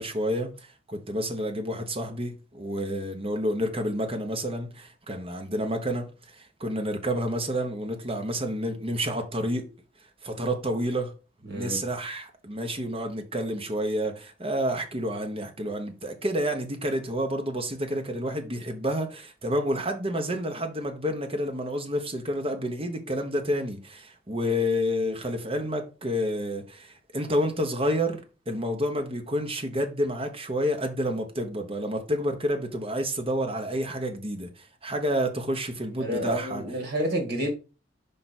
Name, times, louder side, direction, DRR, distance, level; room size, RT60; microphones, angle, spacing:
voice 1, 0.0-9.7 10.2-11.1 11.5-36.6, equal, 30° right, 1.1 m, -29 dB
voice 2, 11.5-11.8 36.0-37.5, equal, 55° right, 2.3 m, -29 dB
5.1 x 4.6 x 4.2 m
head